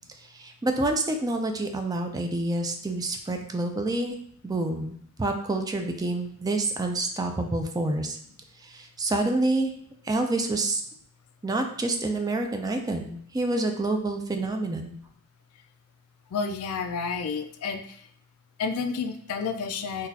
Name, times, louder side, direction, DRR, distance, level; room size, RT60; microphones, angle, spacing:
voice 1, 0.2-4.2 4.4-8.2 8.6-9.7 10.0-10.8 11.4-14.9, right 2 dB, 15° right, 4 dB, 0.3 m, -28 dB
voice 2, 16.3-18.1 18.6-20.1, left 5 dB, 70° left, 8 dB, 0.4 m, -30 dB
3.9 x 2.3 x 2.8 m, 0.64 s
head